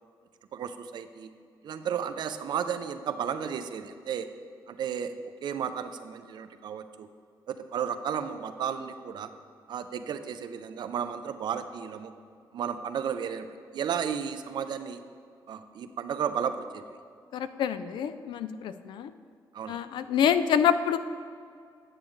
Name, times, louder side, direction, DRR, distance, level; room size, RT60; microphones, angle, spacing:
voice 1, 0.5-1.3 1.6-4.3 4.7-5.1 5.4-7.1 7.5-9.3 9.7-12.1 12.5-13.5 13.7-15.0 15.5-16.8 19.5-19.8, right 8 dB, 65° right, 10 dB, 0.5 m, -33 dB
voice 2, 17.3-19.1 19.7-21.0, left 8 dB, 75° left, 11 dB, 0.4 m, -26 dB
9.0 x 7.6 x 3.1 m, 2.2 s
cardioid pair, 105°, 8 cm